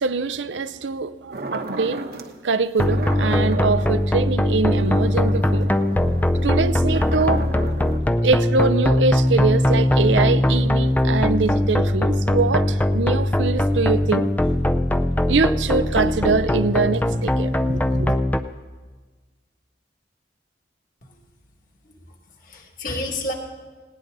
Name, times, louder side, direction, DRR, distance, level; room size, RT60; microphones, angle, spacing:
voice 1, 0.0-2.0 2.4-5.7 6.4-7.4 8.2-14.3 15.3-18.2, right 4 dB, 90° right, 0.6 m, -23 dB
sound 1, 1.3-2.3 2.8-8.0, right 2 dB, 55° right, 1.0 m, -34 dB
sound 2, 2.8-18.4, left 1 dB, 10° left, 0.5 m, -20 dB
voice 2, 22.4-23.3, left 1 dB, 50° left, 2.3 m, -31 dB
19.0 x 18.0 x 4.0 m
head